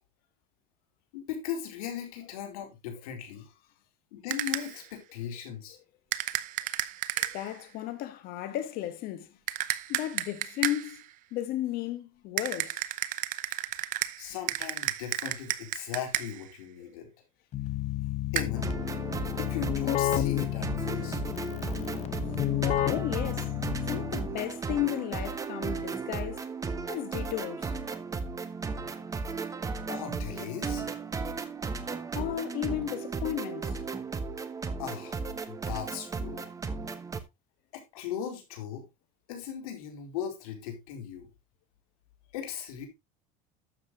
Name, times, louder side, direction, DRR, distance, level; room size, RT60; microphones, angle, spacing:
voice 1, 1.1-3.5 4.1-5.8 14.2-17.1 18.3-18.7 19.4-21.2 29.9-30.9 34.8-36.5 37.7-38.8 39.3-41.3 42.3-42.9, left 9 dB, 85° left, 4.4 m, -38 dB
sound 1, 4.3-4.9 6.1-7.6 9.5-11.0 12.4-16.5 18.4-18.5, right 14 dB, 45° right, 0.8 m, -32 dB
voice 2, 7.2-9.4 9.9-11.0 11.3-12.8 16.9-17.0 22.9-23.5 23.8-26.5 26.9-27.7 32.1-33.8, left 13 dB, 55° left, 2.1 m, -34 dB
Keyboard (musical), 17.5-24.4, left 14 dB, 40° left, 0.8 m, -31 dB
sound 2, 18.5-37.2, right 4 dB, 20° right, 1.2 m, -35 dB
12.0 x 7.5 x 3.2 m
supercardioid pair, 125°, 18 cm